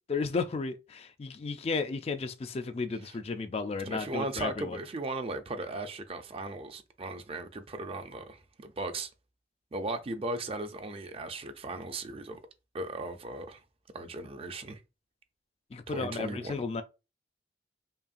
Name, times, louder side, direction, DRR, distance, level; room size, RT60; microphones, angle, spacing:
voice 1, 0.1-4.8 15.7-16.8, left 4 dB, 35° left, 0.3 m, -33 dB
voice 2, 3.9-9.1 9.7-12.4 12.7-13.6 13.9-14.8 15.9-16.6, right 2 dB, 35° right, 0.5 m, -37 dB
5.4 x 2.3 x 2.5 m
head